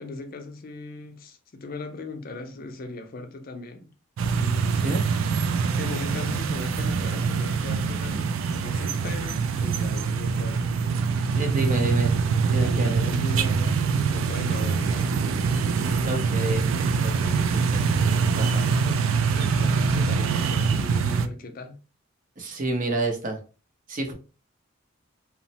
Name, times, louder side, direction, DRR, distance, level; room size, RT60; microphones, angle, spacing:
voice 1, 0.0-3.9 4.3-5.0 5.7-10.7 11.4-11.8 12.5-15.2 17.1-17.5 18.5-19.0 19.3-21.8, left 3 dB, 45° left, 0.4 m, -39 dB
sound 1, 4.2-21.3, right 5 dB, 75° right, 0.3 m, -24 dB
voice 2, 11.3-12.1 12.5-13.0 16.1-16.6 17.0-17.8 18.4-18.7 22.4-23.4 23.9-24.1, right 2 dB, 40° right, 0.7 m, -29 dB
2.9 x 2.0 x 2.7 m
head